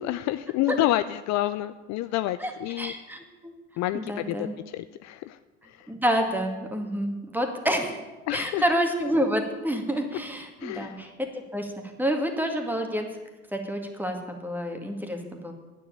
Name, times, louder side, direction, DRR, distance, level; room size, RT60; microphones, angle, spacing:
voice 1, 0.0-2.9 3.8-5.4 5.6-5.9 8.3-8.7 10.6-11.1, left 14 dB, 50° left, 13 dB, 0.5 m, -29 dB
voice 2, 2.8-3.5 3.9-4.5 5.9-8.0 8.3-11.1 11.5-11.7 12.0-13.0 13.5-15.5, equal, 5° right, 4 dB, 2.1 m, -28 dB
9.4 x 7.8 x 8.8 m, 1.2 s
hypercardioid pair, 75°, 36 cm